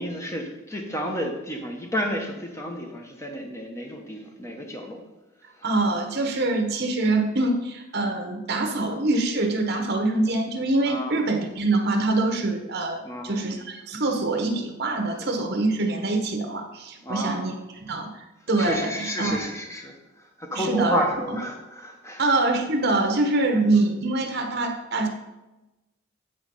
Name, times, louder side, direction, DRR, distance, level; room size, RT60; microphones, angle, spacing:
voice 1, 0.0-5.0 5.6-5.7 10.9-11.2 13.0-13.4 17.0-17.5 18.6-22.2 23.5-23.6, equal, 15° left, 2 dB, 1.0 m, -31 dB
voice 2, 5.6-18.1 18.5-19.4 20.5-21.0 22.2-25.1, right 2 dB, 50° right, 5 dB, 1.1 m, -24 dB
9.2 x 3.9 x 5.4 m, 1.0 s
head